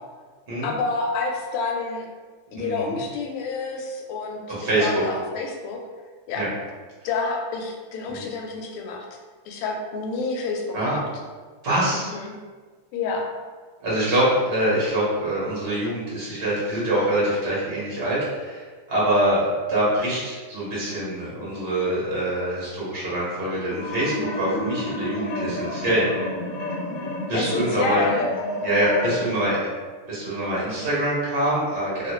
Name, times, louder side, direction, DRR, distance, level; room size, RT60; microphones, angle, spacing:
voice 1, 0.6-2.1 2.5-4.4 4.8-5.8 6.3-6.4 7.0-9.0 9.5-11.0 11.9-12.3 12.9-13.3 27.3-28.3, left 4 dB, 90° left, 2 dB, 1.5 m, -28 dB
voice 2, 2.5-3.0 4.5-5.0 6.3-6.5 8.1-8.2 10.7-11.0 11.6-12.1 13.8-26.1 27.3-28.1 28.6-29.6 30.1-32.1, right 1 dB, 45° right, -8 dB, 0.7 m, -24 dB
sound 1, 23.7-29.2, left 1 dB, 70° left, 1.1 m, -30 dB
3.3 x 2.4 x 3.0 m, 1.4 s
omnidirectional pair, 2.3 m